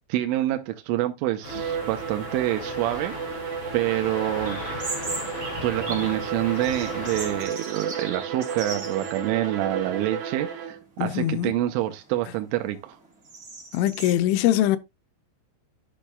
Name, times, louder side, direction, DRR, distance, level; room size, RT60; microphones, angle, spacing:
voice 1, 0.1-3.2 3.7-4.6 5.6-13.0, right 14 dB, 85° right, 3.3 m, -27 dB
sound 1, 1.4-7.4, left 4 dB, 40° left, 2.0 m, -37 dB
Bowed string instrument, 1.4-10.9, right 6 dB, 60° right, 1.9 m, -34 dB
sound 2, 4.4-6.2 6.5-9.3 9.6-9.7 10.5-10.8 11.3-14.1, right 3 dB, 35° right, 1.4 m, -38 dB
voice 2, 11.0-11.6 13.7-14.8, left 13 dB, 85° left, 3.2 m, -22 dB
12.0 x 7.3 x 2.2 m
omnidirectional pair, 5.5 m